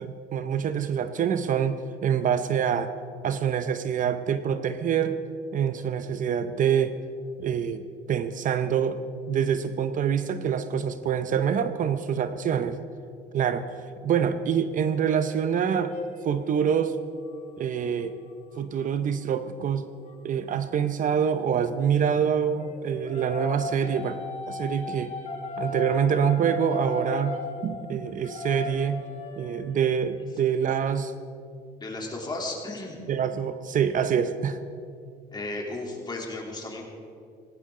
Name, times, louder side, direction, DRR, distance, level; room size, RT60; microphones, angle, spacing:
voice 1, 0.0-2.9 3.2-5.2 5.5-6.9 7.4-9.0 9.3-12.8 13.3-13.7 14.0-15.9 16.2-17.0 17.6-18.2 18.6-19.9 20.2-24.2 24.5-25.1 25.6-27.4 27.6-29.0 29.4-31.1 33.1-34.6, right 8 dB, 50° right, 11 dB, 0.7 m, -26 dB
sound 1, 15.1-20.2 22.2-29.7, left 3 dB, 45° left, 2.7 m, -37 dB
voice 2, 31.8-33.0 35.3-36.8, left 2 dB, 25° left, -1 dB, 3.2 m, -34 dB
18.5 x 17.0 x 3.8 m, 2.4 s
cardioid pair, 110°, 17 cm